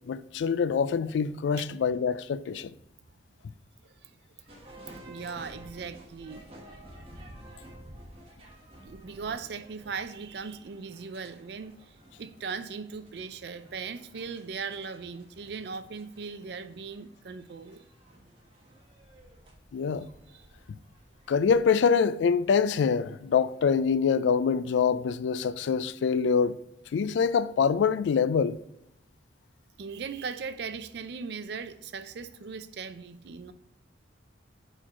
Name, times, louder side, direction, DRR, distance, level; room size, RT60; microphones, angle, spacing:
voice 1, 0.1-2.7 19.7-20.1 21.3-26.6 26.9-28.6, left 6 dB, 75° left, 0.3 m, -25 dB
sound 1, 4.5-23.9, right 1 dB, 30° right, 1.1 m, -53 dB
voice 2, 5.0-6.5 8.8-17.8 20.3-20.5 29.8-33.5, right 5 dB, 60° right, 0.4 m, -39 dB
4.5 x 4.5 x 5.6 m
head